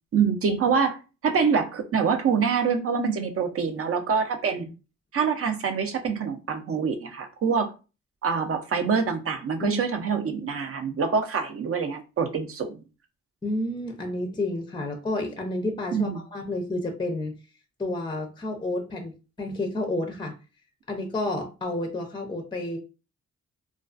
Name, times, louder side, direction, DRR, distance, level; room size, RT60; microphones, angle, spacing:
voice 1, 0.1-1.0 1.2-4.7 5.1-7.7 8.2-12.8 15.9-16.2, right 6 dB, 50° right, 6 dB, 0.5 m, -25 dB
voice 2, 13.4-17.4 17.8-20.4 20.9-22.8, left 2 dB, 15° left, 4 dB, 0.5 m, -30 dB
2.3 x 2.3 x 2.4 m, 0.32 s
cardioid pair, 75°, 30 cm